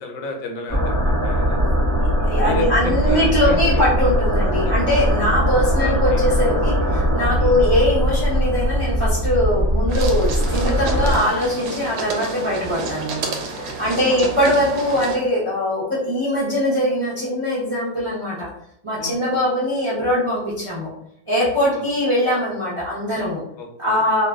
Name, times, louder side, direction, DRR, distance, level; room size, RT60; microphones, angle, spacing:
voice 1, 0.0-1.6 2.4-3.8 4.6-4.7 5.8-6.2 7.4-7.6 13.6-14.2 19.0-19.2 21.7-21.8 23.6-24.1, left 2 dB, 85° left, 2 dB, 1.4 m, -32 dB
sound 1, 0.7-11.2, equal, 25° left, 0.3 m, -20 dB
voice 2, 2.2-13.3 13.6-18.5 18.8-20.9 21.3-23.4 23.8-24.3, left 1 dB, 45° right, -8 dB, 0.4 m, -21 dB
sound 2, 9.9-15.2, right 3 dB, 70° right, 1.0 m, -30 dB
2.9 x 2.6 x 2.3 m, 0.74 s
omnidirectional pair, 2.0 m